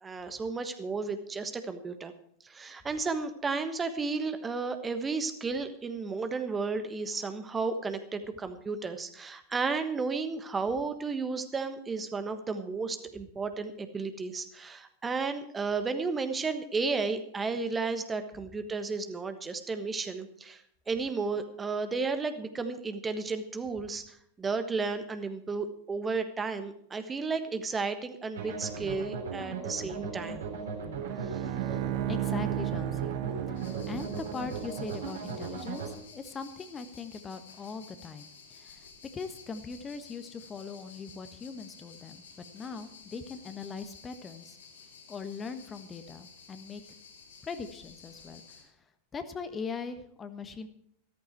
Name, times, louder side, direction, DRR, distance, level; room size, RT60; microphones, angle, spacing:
voice 1, 0.0-2.1 2.4-30.4 31.3-31.4, right 4 dB, 15° right, 9 dB, 1.2 m, -33 dB
sound 1, 28.3-35.9, right 5 dB, 65° right, 3.6 m, -37 dB
Bowed string instrument, 31.0-34.5, right 14 dB, 45° right, 0.9 m, -34 dB
voice 2, 32.1-33.2 33.5-38.9 39.1-44.6 45.1-46.8 47.4-48.8 49.1-50.7, left 5 dB, 20° left, 10 dB, 1.3 m, -41 dB
sound 2, 33.5-48.6, left 5 dB, 65° left, 3.9 m, -53 dB
14.5 x 14.0 x 4.6 m, 0.69 s
figure-of-eight pair, 90°, 0 cm